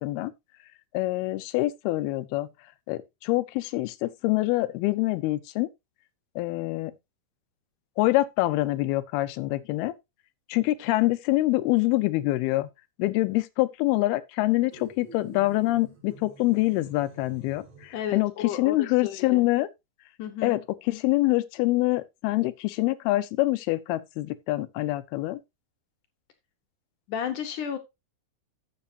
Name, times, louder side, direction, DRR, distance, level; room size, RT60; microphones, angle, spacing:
voice 1, 0.0-0.3 0.9-2.5 2.9-5.7 6.4-6.9 8.0-9.9 10.5-12.7 13.0-19.7 20.4-20.6 20.9-25.4, left 18 dB, 85° left, 2.6 m, -25 dB
sound 1, 14.7-18.2, right 3 dB, 45° right, 3.0 m, -49 dB
voice 2, 17.9-18.8 19.0-19.4 20.2-20.6 27.1-27.8, left 9 dB, 70° left, 2.3 m, -32 dB
12.5 x 7.4 x 2.7 m
omnidirectional pair, 4.4 m